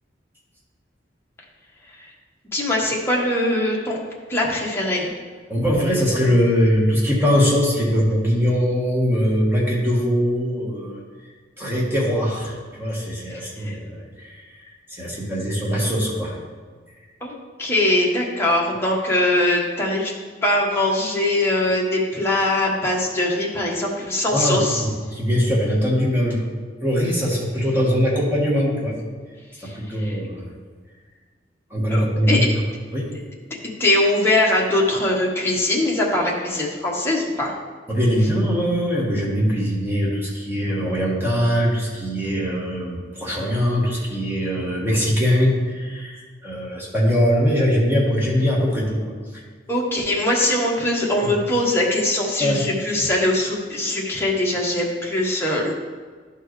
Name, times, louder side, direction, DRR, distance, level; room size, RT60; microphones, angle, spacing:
voice 1, 2.5-4.0 4.3-5.1 13.6-13.8 17.2-17.3 17.6-20.1 20.4-24.8 29.6-30.2 31.9-32.5 33.8-37.5 49.7-55.7, left 1 dB, 15° left, -4 dB, 1.2 m, -21 dB
voice 2, 5.5-11.0 11.6-16.4 24.3-26.4 26.8-29.0 29.6-30.4 31.7-32.4 32.9-33.1 37.9-49.1 51.2-51.3 52.4-52.7, equal, 10° right, -5 dB, 1.4 m, -21 dB
11.5 x 4.5 x 3.2 m, 1.5 s
head